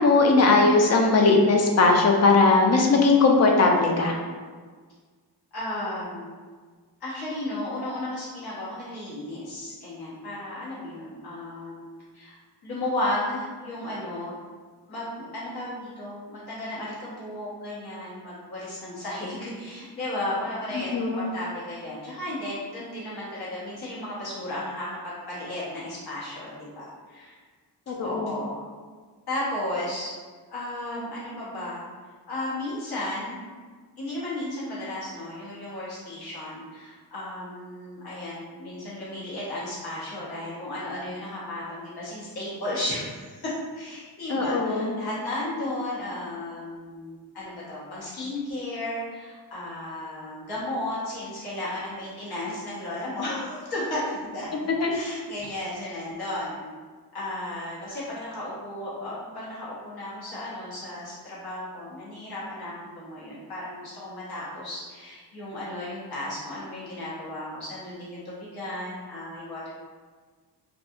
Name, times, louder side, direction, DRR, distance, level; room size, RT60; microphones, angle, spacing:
voice 1, 0.0-4.1 20.7-21.2 27.9-28.3 44.3-44.9 54.8-54.9, left 3 dB, 40° left, 1 dB, 0.4 m, -19 dB
voice 2, 5.5-6.3 7.0-11.9 12.1-12.3 12.6-14.3 14.9-27.3 28.0-28.7 29.3-30.1 30.5-31.8 32.3-33.4 34.0-54.5 54.9-56.6 57.1-69.7, left 1 dB, 65° left, -8 dB, 1.0 m, -34 dB
2.7 x 2.3 x 2.4 m, 1.5 s
wide cardioid pair, 115°, 40 cm